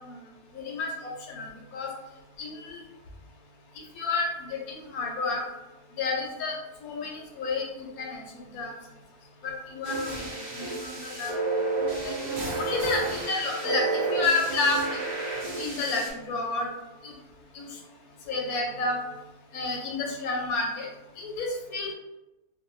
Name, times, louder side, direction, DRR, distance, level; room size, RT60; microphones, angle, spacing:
voice 1, 0.5-1.5 1.7-1.9 2.4-2.8 4.0-5.4 6.0-6.6 6.8-7.7 8.0-8.2 8.5-8.7 9.4-10.3 10.6-11.3 12.0-13.8 14.1-14.8 15.5-16.7 17.0-17.1 17.5-17.7 18.3-19.0 19.5-20.9 21.2-21.9, left 3 dB, 75° left, 0 dB, 1.0 m, -30 dB
sound 1, 9.8-16.1, right 3 dB, 55° right, 0.5 m, -31 dB
2.6 x 2.2 x 2.9 m, 1.0 s
omnidirectional pair, 1.7 m